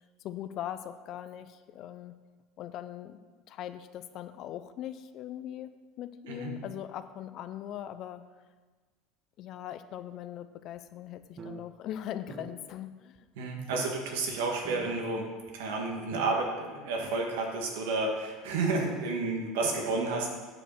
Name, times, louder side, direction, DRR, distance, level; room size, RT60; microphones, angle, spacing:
voice 1, 0.2-2.1 2.6-3.2 3.5-5.7 6.0-8.2 9.4-13.3, left 11 dB, 50° left, 12 dB, 0.5 m, -40 dB
sound 1, 10.8-10.9 11.2-11.6 11.9-12.0 12.3-12.5 13.2-13.3 13.7-13.9 14.3-14.4 14.6-14.9 15.5-15.6 16.1-16.4 17.0-17.1, right 5 dB, 30° right, 0.8 m, -42 dB
voice 2, 13.4-20.3, right 3 dB, 90° right, 1 dB, 1.8 m, -31 dB
8.5 x 5.1 x 6.7 m, 1.4 s
supercardioid pair, 135°, 0 cm